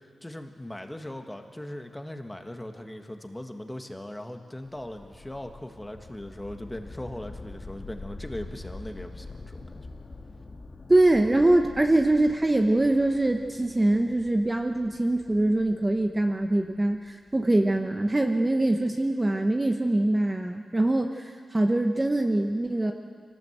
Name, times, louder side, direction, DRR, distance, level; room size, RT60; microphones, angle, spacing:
voice 1, 0.2-9.8, left 1 dB, 10° left, 5 dB, 1.6 m, -39 dB
sound 1, 4.6-17.7, left 3 dB, 35° left, 1.8 m, -45 dB
voice 2, 10.9-22.9, right 1 dB, 20° right, 4 dB, 0.9 m, -23 dB
25.5 x 18.5 x 8.0 m, 2.2 s
wide cardioid pair, 115°, 0 cm